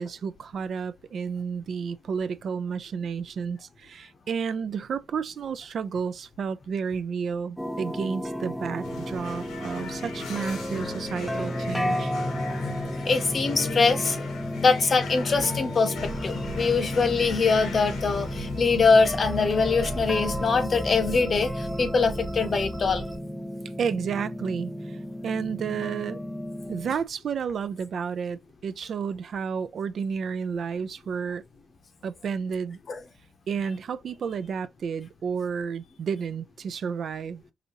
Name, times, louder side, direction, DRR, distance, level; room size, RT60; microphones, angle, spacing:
voice 1, 0.0-12.1 23.8-26.2 26.7-31.4 32.0-32.8 33.5-37.4, right 6 dB, 55° right, 0.4 m, -31 dB
sound 1, 7.6-27.0, left 1 dB, 5° left, 0.5 m, -33 dB
sound 2, 8.8-20.6, left 6 dB, 85° left, 1.5 m, -40 dB
voice 2, 13.0-14.2 14.6-23.0 32.9-33.0, left 4 dB, 40° left, 0.8 m, -23 dB
sound 3, 16.0-23.2, equal, 15° right, 1.1 m, -37 dB
4.9 x 2.7 x 2.8 m
cardioid pair, 90°, 0 cm